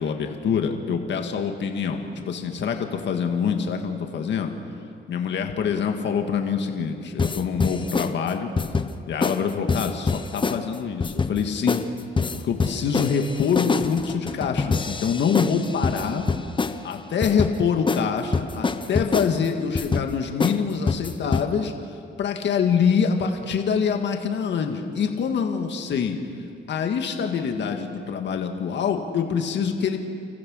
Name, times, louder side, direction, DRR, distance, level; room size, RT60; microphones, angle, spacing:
voice 1, 0.0-4.5 5.1-8.5 9.1-11.8 12.3-16.2 16.8-21.7 22.2-26.2 26.7-30.0, left 6 dB, 65° left, 4 dB, 2.0 m, -25 dB
sound 1, 7.2-8.1 8.6-8.9 9.2-9.4 9.7-10.6 11.0-11.4 11.7-11.9 12.2-16.8 17.2-17.5 17.9-18.0 18.3-19.3 19.8-20.1 20.4-20.6 20.9-21.5, left 4 dB, 25° left, 1.0 m, -25 dB
29.0 x 14.5 x 6.5 m, 2.5 s
cardioid pair, 90°, 20 cm